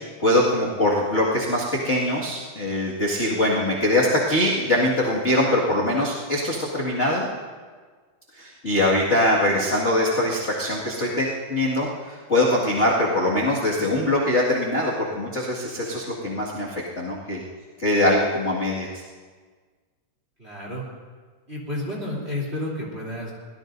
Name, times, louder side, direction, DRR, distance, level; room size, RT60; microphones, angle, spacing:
voice 1, 0.2-7.3 8.4-16.7 17.0-17.4 17.8-19.0, left 1 dB, 25° left, -6 dB, 1.8 m, -22 dB
voice 2, 20.4-20.8 21.5-23.3, left 1 dB, 20° right, -3 dB, 3.3 m, -31 dB
24.0 x 18.0 x 2.7 m, 1.5 s
omnidirectional pair, 3.6 m